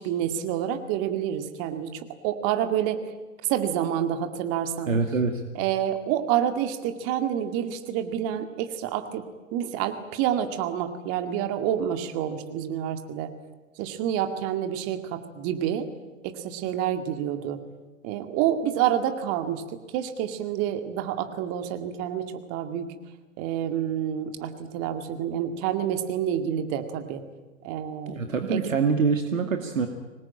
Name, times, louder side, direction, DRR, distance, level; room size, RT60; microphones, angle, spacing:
voice 1, 0.0-3.1 3.4-4.9 5.5-9.2 9.5-13.3 13.8-15.9 16.2-17.6 18.0-22.9 23.4-27.2 27.6-28.2 28.5-28.6, right 10 dB, 35° right, 8 dB, 2.2 m, -28 dB
voice 2, 4.9-5.4 28.1-29.9, right 5 dB, 75° right, 6 dB, 2.2 m, -25 dB
25.5 x 19.5 x 8.9 m, 1.2 s
figure-of-eight pair, 105°, 40 cm